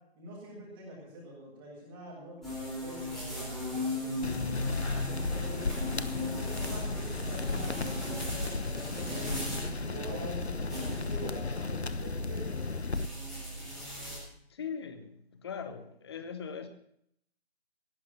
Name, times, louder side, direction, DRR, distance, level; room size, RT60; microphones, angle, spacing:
voice 1, 0.1-4.5 5.1-5.8 6.2-9.4 9.8-12.8, right 1 dB, 25° right, -7 dB, 7.0 m, -45 dB
sound 1, 2.4-14.2, left 1 dB, ahead, 4.5 m, -38 dB
sound 2, 4.2-13.1, left 3 dB, 85° left, 1.0 m, -35 dB
voice 2, 14.5-16.7, left 6 dB, 25° left, 8 dB, 1.2 m, -40 dB
17.0 x 11.0 x 6.1 m, 0.72 s
figure-of-eight pair, 150°, 32 cm